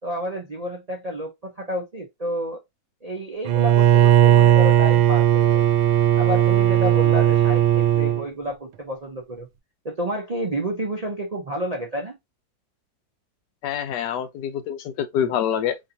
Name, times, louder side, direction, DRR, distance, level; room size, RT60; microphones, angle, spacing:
voice 1, 0.0-2.6 3.0-5.7 6.2-9.5 9.8-12.2, equal, 45° right, 0.5 m, -30 dB
Bowed string instrument, 3.5-8.3, right 11 dB, 90° right, 1.3 m, -17 dB
voice 2, 13.6-15.8, left 9 dB, 75° left, 1.1 m, -26 dB
4.5 x 2.8 x 2.7 m
omnidirectional pair, 1.9 m